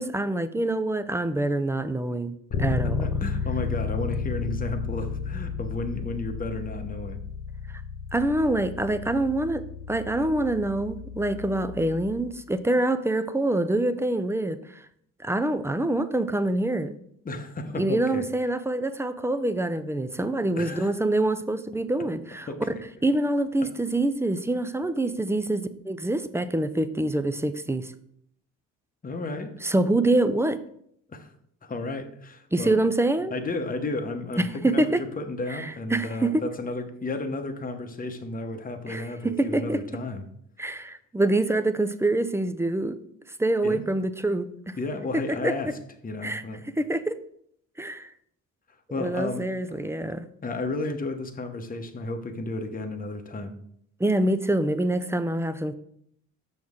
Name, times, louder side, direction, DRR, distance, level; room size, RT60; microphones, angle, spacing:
voice 1, 0.0-2.3 2.6-3.1 8.1-14.8 15.2-17.0 17.8-22.5 23.0-27.9 29.6-30.6 32.5-33.3 34.4-35.0 35.5-36.3 38.9-39.1 39.4-39.8 40.6-43.0 43.4-44.8 45.4-45.5 46.2-46.4 46.8-47.2 47.8-48.1 49.0-50.3 54.0-55.7, right 2 dB, 5° right, 11 dB, 0.5 m, -25 dB
Bass guitar, 2.5-12.3, left 5 dB, 55° left, 1.2 m, -33 dB
voice 2, 2.7-7.2 17.2-18.3 20.6-20.9 22.5-22.7 29.0-29.5 31.1-31.3 31.6-32.8 33.3-40.2 43.6-43.8 44.8-45.7 46.0-46.6 48.9-49.5 50.4-53.5, left 2 dB, 25° left, 6 dB, 1.0 m, -33 dB
6.3 x 6.3 x 3.6 m, 0.68 s
supercardioid pair, 70°, 37 cm